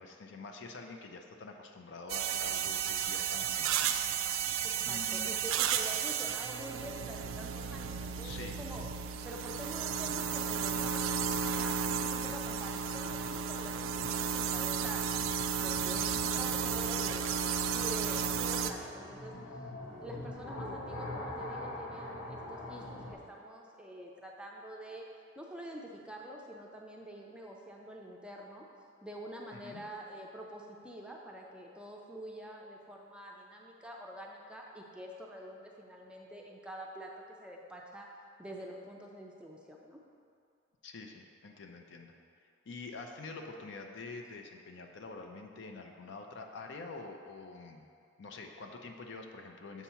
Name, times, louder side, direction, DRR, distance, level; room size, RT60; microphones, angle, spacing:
voice 1, 0.0-3.7 4.8-5.3 8.2-8.6 16.1-16.4 29.5-29.8 40.8-42.1 42.7-47.8 48.2-49.8, left 3 dB, 65° left, 4 dB, 0.5 m, -46 dB
sound 1, 2.1-18.7, right 7 dB, 90° right, 0.3 m, -33 dB
voice 2, 4.6-8.9 9.2-15.2 15.6-16.1 16.4-19.4 20.0-25.1 25.4-28.7 29.0-38.1 38.4-40.0, equal, 5° right, -1 dB, 0.4 m, -46 dB
sound 2, 7.9-23.1, left 1 dB, 90° left, 0.9 m, -46 dB
7.1 x 2.8 x 5.6 m, 2.4 s
head